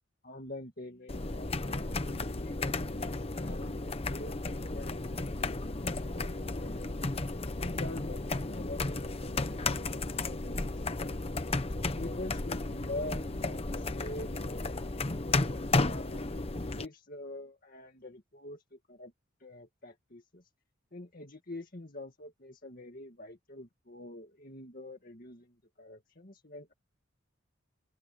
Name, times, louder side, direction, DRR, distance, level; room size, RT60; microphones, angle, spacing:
voice 1, 0.2-7.1 7.6-11.0 12.0-15.1 15.7-19.1 19.4-20.4 20.9-26.7, left 1 dB, 45° left, 2.1 m, -46 dB
sound 1, 1.1-16.9, left 2 dB, 30° left, 0.9 m, -33 dB
open air
head